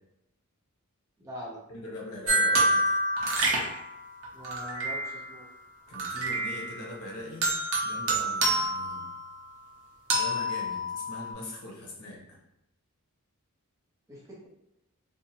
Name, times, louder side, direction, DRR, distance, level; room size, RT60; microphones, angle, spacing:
voice 1, 1.2-1.6 4.3-5.5 14.1-14.5, equal, 15° right, -5 dB, 0.6 m, -43 dB
voice 2, 1.7-2.9 5.9-7.6 7.8-9.1 10.1-12.4, left 1 dB, 80° left, -2 dB, 0.8 m, -42 dB
sound 1, 2.3-5.3 5.9-6.9 7.4-9.6 10.1-11.3, right 1 dB, 60° right, 0.6 m, -28 dB
2.7 x 2.1 x 2.7 m, 0.86 s
head